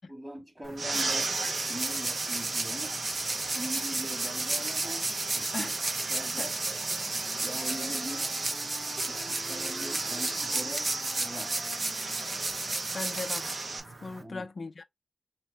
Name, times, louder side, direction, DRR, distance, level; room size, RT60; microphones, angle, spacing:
voice 1, 0.1-1.4 1.7-3.0 3.5-5.1 5.3-5.7 6.1-6.5 7.4-8.5 9.0-10.9 11.2-11.5 14.2-14.5, right 1 dB, 20° right, 1.5 m, -41 dB
sound 1, 0.6-14.2, right 2 dB, 50° right, 0.8 m, -34 dB
sound 2, 0.8-13.8, right 3 dB, 85° right, 0.9 m, -35 dB
Wind instrument woodwind instrument, 6.2-13.7, left 1 dB, 15° left, 0.7 m, -50 dB
voice 2, 12.9-13.5 14.0-14.8, left 4 dB, 60° left, 0.4 m, -38 dB
3.0 x 2.8 x 3.2 m
wide cardioid pair, 70°, 0 cm